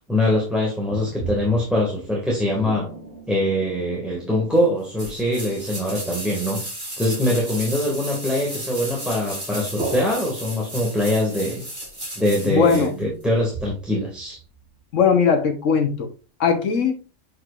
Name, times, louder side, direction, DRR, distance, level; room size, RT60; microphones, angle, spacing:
voice 1, 0.1-2.9 3.3-6.6 7.0-11.7 12.1-14.4, left 1 dB, ahead, 1.8 m, -23 dB
sound 1, 0.9-5.6 9.8-12.1 12.5-12.6 13.0-15.3, right 3 dB, 60° right, 3.6 m, -37 dB
sound 2, 5.0-12.9 13.2-13.3, right 1 dB, 40° right, 3.0 m, -34 dB
voice 2, 12.4-12.9 14.9-16.1 16.4-17.0, left 6 dB, 70° left, 1.5 m, -19 dB
7.5 x 5.2 x 2.5 m
omnidirectional pair, 1.3 m